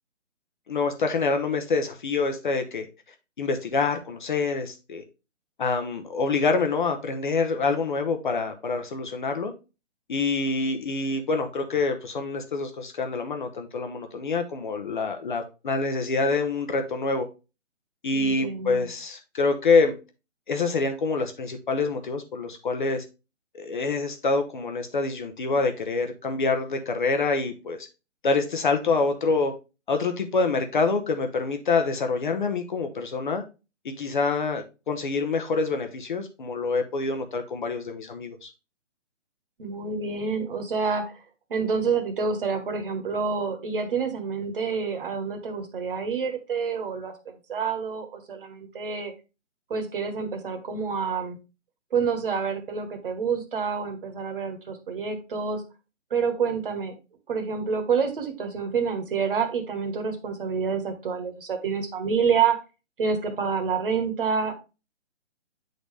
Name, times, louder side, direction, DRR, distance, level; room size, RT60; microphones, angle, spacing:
voice 1, 0.7-2.9 3.4-5.0 5.6-9.5 10.1-17.3 18.0-19.9 20.5-23.0 23.5-27.9 28.2-29.5 29.9-33.4 33.8-38.5, left 4 dB, 40° left, 0.9 m, -26 dB
voice 2, 18.1-18.9 39.6-41.1 41.5-47.1 47.5-49.1 49.7-51.4 51.9-55.6 56.1-56.9 57.3-62.6 63.0-64.5, right 5 dB, 45° right, 1.4 m, -28 dB
8.2 x 4.0 x 3.3 m
hypercardioid pair, 160°, 37 cm